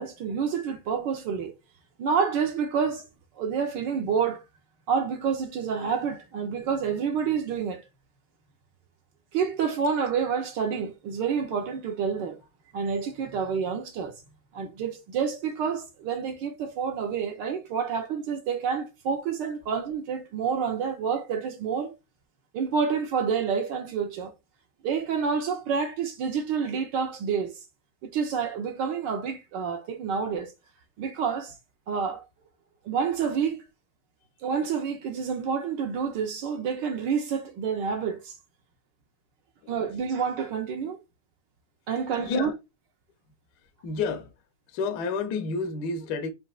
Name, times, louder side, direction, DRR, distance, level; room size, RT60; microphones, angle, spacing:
voice 1, 0.0-1.5 2.0-3.0 3.4-4.4 4.9-7.8 9.3-12.4 12.7-14.1 14.5-21.9 22.5-24.3 24.8-27.5 28.0-30.5 31.0-31.5 31.9-32.2 32.8-33.6 34.4-38.3 39.7-41.0 41.9-42.5, right 6 dB, 65° right, 1.3 m, -28 dB
voice 2, 42.2-42.5 43.8-44.3 44.7-46.3, left 4 dB, 60° left, 1.1 m, -30 dB
6.5 x 2.9 x 2.4 m
omnidirectional pair, 2.4 m